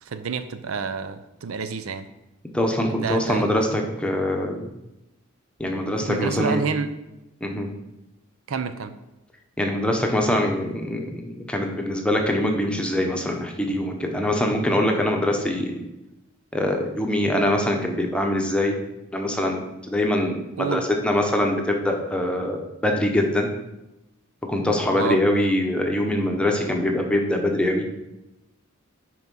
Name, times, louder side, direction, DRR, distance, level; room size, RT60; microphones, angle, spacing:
voice 1, 0.0-2.1 2.9-3.5 6.0-6.9 8.5-8.9 20.6-20.8 24.9-25.2, right 5 dB, 85° right, 11 dB, 0.5 m, -28 dB
voice 2, 2.5-4.7 5.6-6.6 7.4-7.7 9.6-15.7 16.5-18.8 19.1-19.6 19.9-23.5 24.5-27.9, left 1 dB, 5° left, 2 dB, 0.8 m, -23 dB
5.9 x 4.5 x 5.4 m, 0.94 s
head